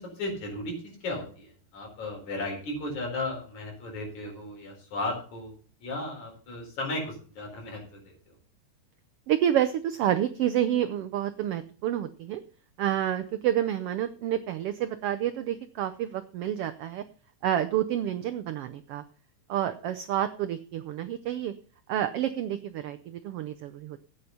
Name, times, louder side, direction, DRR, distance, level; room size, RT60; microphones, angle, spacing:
voice 1, 0.0-5.5 5.8-8.3, left 2 dB, 70° left, 0 dB, 5.8 m, -35 dB
voice 2, 9.3-12.4 12.8-17.0 17.4-19.0 19.5-21.5 21.9-24.0, right 11 dB, 80° right, 9 dB, 1.3 m, -29 dB
12.5 x 9.0 x 5.6 m, 0.41 s
omnidirectional pair, 3.4 m